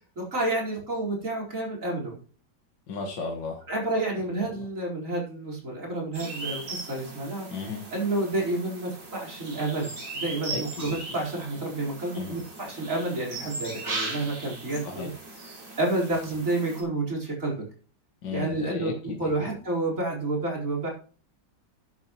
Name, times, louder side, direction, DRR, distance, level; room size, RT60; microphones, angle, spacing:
voice 1, 0.2-2.2 3.7-7.5 7.9-15.1 15.4-17.6 18.3-18.9 19.2-20.9, right 2 dB, 45° right, -1 dB, 4.8 m, -30 dB
voice 2, 2.9-3.6 7.5-7.8 10.5-11.0 12.1-12.4 14.8-15.1 18.2-19.5, left 4 dB, 80° left, 1 dB, 2.1 m, -34 dB
sound 1, 6.1-16.8, right 3 dB, 85° right, 4.2 m, -38 dB
11.5 x 11.0 x 3.0 m, 0.39 s
omnidirectional pair, 1.9 m